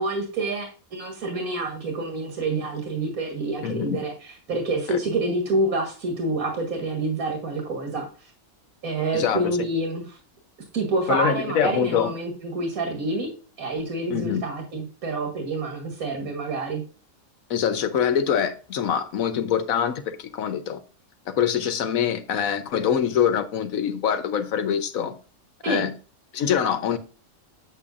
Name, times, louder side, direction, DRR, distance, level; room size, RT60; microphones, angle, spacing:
voice 1, 0.0-8.3 8.8-10.2 10.7-13.3 13.6-16.8 25.6-25.8, right 2 dB, 80° right, 2.1 m, -27 dB
voice 2, 3.6-4.0 4.9-5.0 9.1-9.6 11.1-12.1 14.1-14.4 17.5-20.8 21.3-25.2 25.6-25.9 26.3-27.0, left 8 dB, 70° left, 1.3 m, -24 dB
8.5 x 7.8 x 2.5 m
omnidirectional pair, 1.5 m